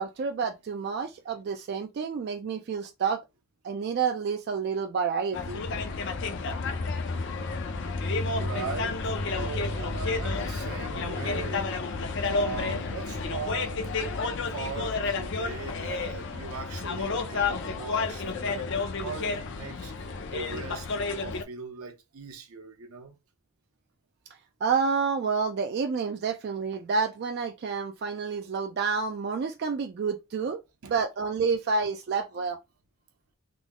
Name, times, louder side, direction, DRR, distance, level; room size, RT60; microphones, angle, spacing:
voice 1, 0.0-3.2 3.6-5.6 24.6-30.6 30.9-32.6, right 5 dB, 50° right, 0.3 m, -29 dB
sound 1, 5.3-21.4, left 3 dB, 55° left, 0.5 m, -31 dB
voice 2, 8.3-11.8 12.2-13.9 14.5-20.9 21.2-23.1 30.8-30.9, right 4 dB, 80° right, 0.8 m, -39 dB
3.7 x 2.0 x 3.5 m
head